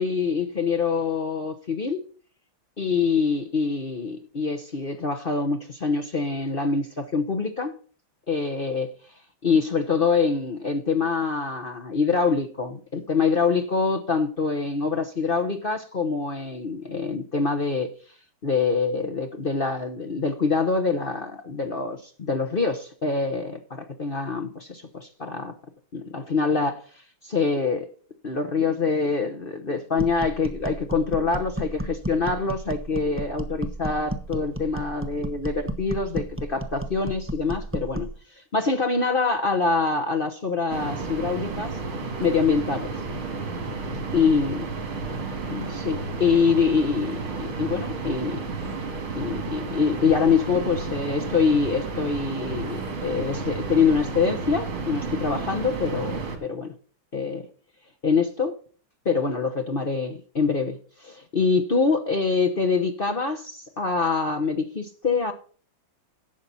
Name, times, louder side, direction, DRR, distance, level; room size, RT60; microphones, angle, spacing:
voice 1, 0.0-2.0 2.8-7.7 8.3-8.9 9.4-17.9 18.4-25.5 25.9-27.9 28.2-41.8 42.2-42.9 44.1-44.6 45.5-48.4 49.1-56.7 57.1-57.4 58.0-58.6 59.0-65.3, left 4 dB, 40° left, 0.8 m, -25 dB
sound 1, 30.0-38.2, right 1 dB, 15° right, 0.5 m, -33 dB
sound 2, 40.7-56.4, right 4 dB, 80° right, 3.3 m, -32 dB
11.5 x 8.1 x 4.2 m
omnidirectional pair, 2.3 m